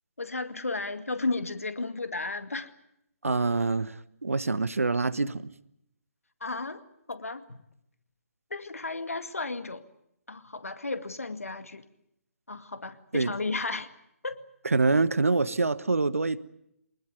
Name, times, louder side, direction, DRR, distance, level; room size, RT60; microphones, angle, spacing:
voice 1, 0.2-2.7 3.3-3.4 6.4-6.8 7.1-7.6 8.5-9.8 10.3-11.9 12.5-13.9 14.2-14.4, left 3 dB, 70° left, 11 dB, 2.1 m, -33 dB
voice 2, 3.2-5.5 13.1-13.3 14.6-16.4, right 3 dB, 70° right, 17 dB, 1.2 m, -25 dB
24.0 x 20.0 x 9.2 m, 0.78 s
figure-of-eight pair, 140°, 8 cm